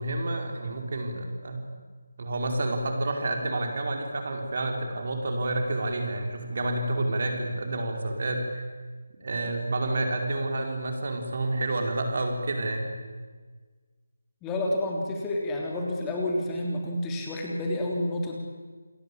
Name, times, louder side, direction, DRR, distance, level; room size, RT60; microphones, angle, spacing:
voice 1, 0.0-1.6 2.2-8.6 9.2-13.0, right 2 dB, 45° right, 3 dB, 5.1 m, -29 dB
voice 2, 14.4-18.4, left 1 dB, 10° left, -1 dB, 3.5 m, -29 dB
28.5 x 21.5 x 8.7 m, 1.4 s
figure-of-eight pair, 155°, 0 cm